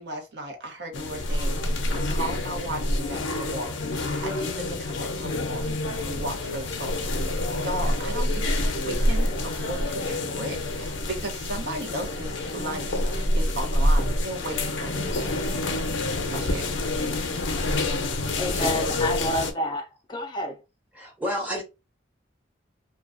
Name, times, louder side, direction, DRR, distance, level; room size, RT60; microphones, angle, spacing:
voice 1, 0.0-5.7 6.0-15.2 16.2-16.7, right 1 dB, 60° right, 0.7 m, -36 dB
sound 1, 0.9-19.5, left 1 dB, 80° left, 0.5 m, -27 dB
voice 2, 18.4-20.6, equal, 25° left, 0.4 m, -29 dB
voice 3, 20.9-21.6, equal, 10° right, 0.7 m, -30 dB
2.3 x 2.2 x 2.4 m
head